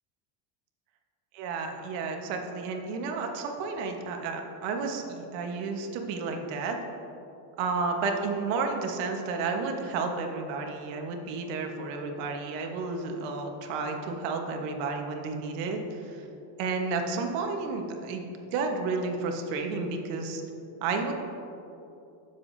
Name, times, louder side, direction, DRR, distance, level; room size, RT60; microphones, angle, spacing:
voice 1, 1.3-6.8 7.6-16.2 16.6-18.2 18.5-20.4 20.8-21.1, right 4 dB, 80° right, 3 dB, 1.4 m, -31 dB
17.0 x 7.2 x 2.7 m, 2.9 s
cardioid pair, 160°, 48 cm